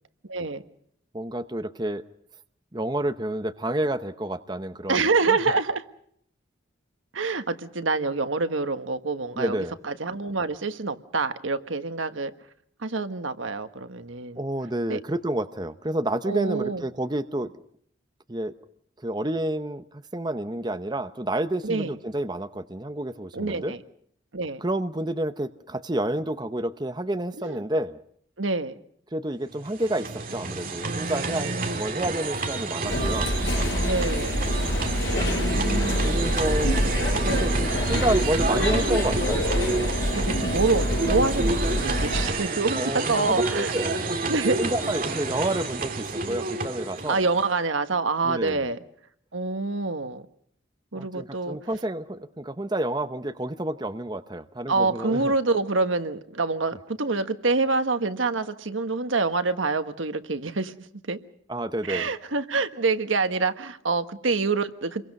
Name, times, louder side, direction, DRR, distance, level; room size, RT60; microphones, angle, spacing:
voice 1, 0.3-0.6 4.9-5.8 7.1-9.6 9.8-12.3 12.8-14.4 14.9-15.0 16.3-16.8 21.6-21.9 23.3-23.8 24.3-24.6 27.4-27.6 28.4-28.8 30.8-31.9 33.8-34.3 35.2-36.1 36.7-36.8 37.2-37.5 40.1-43.7 44.3-44.6 47.1-48.8 49.3-50.2 50.9-51.6 54.7-60.7 61.1-61.2 61.8-65.0, right 3 dB, 85° right, 9 dB, 1.4 m, -26 dB
voice 2, 1.1-2.1 2.7-5.4 9.3-9.7 14.4-17.5 18.3-18.5 19.0-19.8 20.1-23.7 24.6-28.0 29.1-33.3 36.0-36.8 37.3-39.5 42.7-43.3 43.7-44.2 44.6-47.2 48.2-48.7 50.9-55.3 61.5-62.1, right 1 dB, 20° right, 9 dB, 0.8 m, -29 dB
sound 1, 29.5-47.6, right 3 dB, 45° right, 2.1 m, -29 dB
sound 2, 32.9-42.3, equal, 75° left, 5.6 m, -26 dB
28.0 x 23.0 x 5.4 m, 0.69 s
head